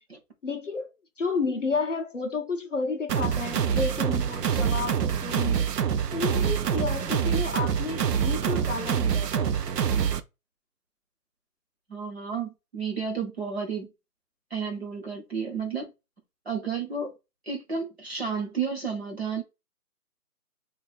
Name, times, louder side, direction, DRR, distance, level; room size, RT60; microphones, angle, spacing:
voice 1, 0.4-0.9 1.2-5.8 6.1-9.5, left 4 dB, 50° left, 0.5 m, -31 dB
sound 1, 3.1-10.2, right 8 dB, 80° right, 0.6 m, -26 dB
voice 2, 11.9-13.9 14.5-15.9 16.5-17.1 17.5-19.4, right 5 dB, 40° right, 1.0 m, -31 dB
2.5 x 2.3 x 4.0 m
hypercardioid pair, 180°, 48 cm